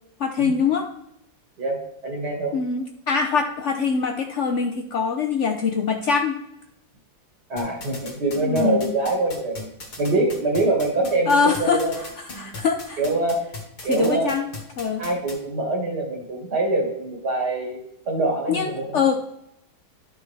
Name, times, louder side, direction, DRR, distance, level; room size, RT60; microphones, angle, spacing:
voice 1, 0.2-0.9 2.5-6.4 8.4-8.9 11.3-13.0 13.8-14.4 14.8-15.0 18.5-19.2, left 5 dB, 90° left, 5 dB, 0.6 m, -23 dB
voice 2, 1.6-2.6 7.5-9.7 10.0-11.9 12.3-12.5 13.0-13.4 13.8-14.3 15.0-17.8 18.1-19.0, right 2 dB, 60° right, 1 dB, 2.4 m, -24 dB
sound 1, 7.6-15.4, left 3 dB, 55° left, 2.4 m, -37 dB
11.5 x 6.0 x 3.3 m, 0.81 s
omnidirectional pair, 2.0 m